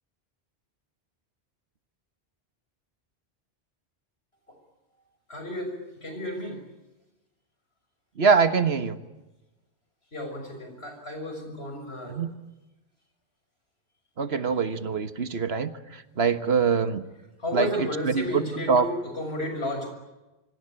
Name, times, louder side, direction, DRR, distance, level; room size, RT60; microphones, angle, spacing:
voice 1, 5.3-5.7 6.0-6.6 10.1-12.2 17.4-19.9, left 1 dB, 70° left, 5 dB, 6.6 m, -32 dB
voice 2, 8.2-9.0 12.1-12.3 14.2-17.0 17.5-18.4 18.7-18.9, right 5 dB, 70° right, 11 dB, 1.6 m, -24 dB
25.0 x 25.0 x 8.9 m, 1.0 s
omnidirectional pair, 1.1 m